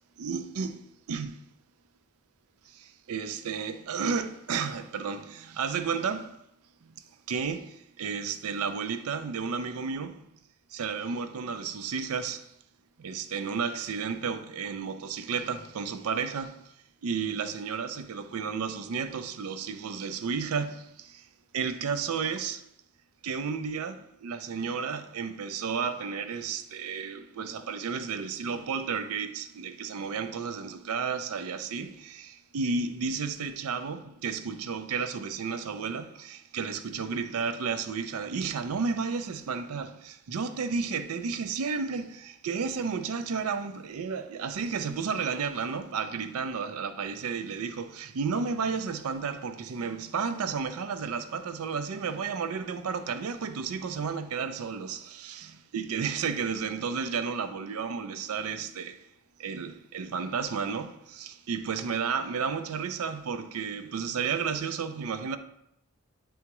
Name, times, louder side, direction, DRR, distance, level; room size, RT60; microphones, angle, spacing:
voice 1, 0.2-1.4 2.7-6.4 6.8-10.2 10.7-12.5 13.0-16.6 17.0-21.3 21.5-22.6 23.2-59.0 59.4-65.4, right 5 dB, 75° right, 0.4 m, -32 dB
9.4 x 3.4 x 2.9 m
head